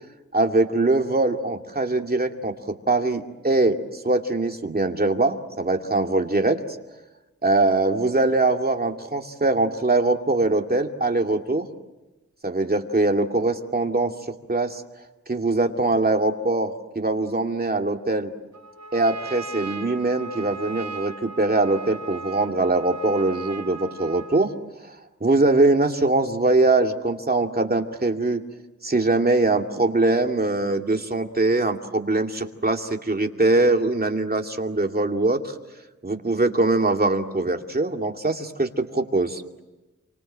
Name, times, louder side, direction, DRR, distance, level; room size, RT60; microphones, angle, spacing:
voice 1, 0.3-3.8 4.0-6.6 7.4-11.7 12.4-14.8 15.3-18.3 18.9-24.5 24.8-24.9 25.2-28.4 28.8-35.5 36.0-39.6, right 2 dB, 30° right, 3 dB, 2.5 m, -22 dB
Trumpet, 18.5-24.5, right 4 dB, 70° right, 4.9 m, -38 dB
29.0 x 25.0 x 7.6 m, 1.1 s
wide cardioid pair, 85°, 29 cm